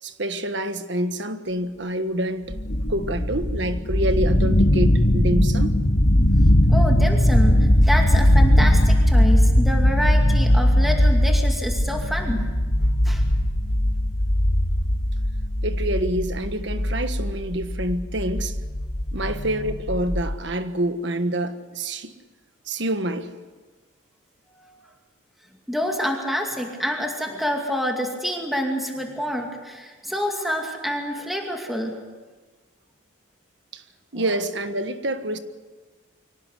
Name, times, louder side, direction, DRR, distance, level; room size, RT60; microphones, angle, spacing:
voice 1, 0.0-2.6 2.9-5.8 15.6-18.6 19.1-22.1 22.7-23.3 33.7-33.8 34.1-35.4, right 1 dB, 60° right, 1.5 m, -27 dB
sound 1, 2.5-20.3, left 1 dB, 50° left, 1.8 m, -19 dB
voice 2, 6.7-12.5 13.0-13.2 19.2-19.3 24.5-24.7 25.7-32.0, equal, ahead, 2.4 m, -27 dB
24.5 x 17.5 x 8.3 m
head